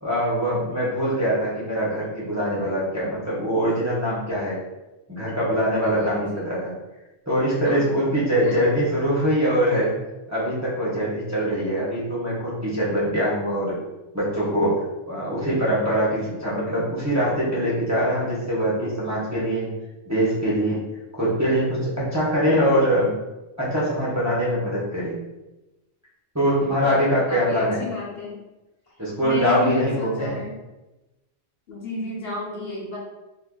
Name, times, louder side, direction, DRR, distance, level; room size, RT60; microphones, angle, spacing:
voice 1, 0.0-4.6 5.1-6.7 7.3-9.9 10.3-13.8 14.1-19.7 20.1-20.8 21.2-23.1 23.6-25.2 26.3-27.8 29.0-30.4, equal, 15° right, -7 dB, 0.7 m, -23 dB
voice 2, 5.8-6.4 7.6-8.0 8.4-8.6 26.6-28.4 29.2-30.6 31.7-33.0, left 4 dB, 60° left, -4 dB, 0.9 m, -32 dB
2.7 x 2.4 x 3.7 m, 1.0 s
omnidirectional pair, 1.2 m